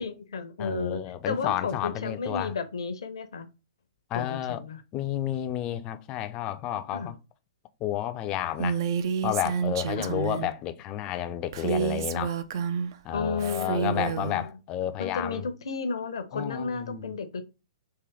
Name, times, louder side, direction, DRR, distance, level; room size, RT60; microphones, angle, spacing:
voice 1, 0.0-3.5 4.1-4.8 6.9-7.1 10.0-10.1 13.1-14.4 15.0-17.4, left 4 dB, 65° left, 0.6 m, -33 dB
voice 2, 0.6-2.5 4.1-4.6 4.9-7.2 7.8-8.8 9.2-12.4 13.0-15.4 16.3-17.2, left 12 dB, 30° left, 0.4 m, -31 dB
Female speech woman speaking, 8.6-10.5 11.5-12.9 13.4-14.4, right 7 dB, 50° right, 0.4 m, -29 dB
3.7 x 2.7 x 3.3 m
figure-of-eight pair, 115°, 3 cm